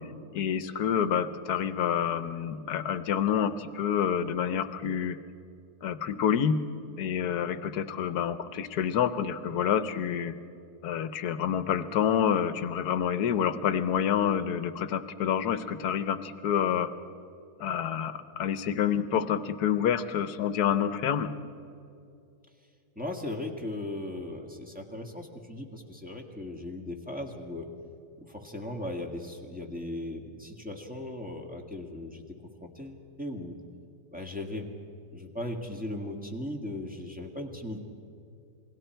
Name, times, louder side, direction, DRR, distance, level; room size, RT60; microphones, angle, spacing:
voice 1, 0.3-5.2 5.8-6.6 7.0-10.3 10.8-16.9 17.6-21.3, left 8 dB, 75° left, 12 dB, 1.4 m, -28 dB
voice 2, 22.9-27.7 28.2-32.2 32.6-33.6 34.1-34.7 35.1-37.8, left 1 dB, 5° right, 1 dB, 1.6 m, -37 dB
28.5 x 21.0 x 4.5 m, 2.5 s
omnidirectional pair, 1.7 m